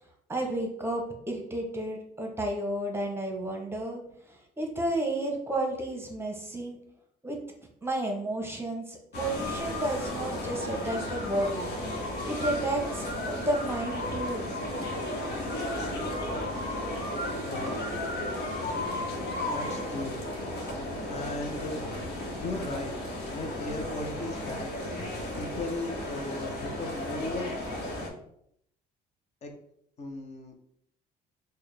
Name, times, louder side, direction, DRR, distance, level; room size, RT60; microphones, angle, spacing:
voice 1, 0.3-4.0 4.6-6.8 7.2-7.4 7.8-11.7 12.2-14.6, right 1 dB, 15° right, 2 dB, 0.8 m, -32 dB
sound 1, 9.1-28.1, left 1 dB, 75° left, 1.0 m, -34 dB
voice 2, 17.4-18.0 19.4-20.2 21.1-21.8 22.4-23.0 23.3-24.7 25.4-27.5 29.4-29.5 30.0-30.5, left 2 dB, 40° left, 2 dB, 0.6 m, -36 dB
4.5 x 2.1 x 3.3 m, 0.71 s
cardioid pair, 110°, 17 cm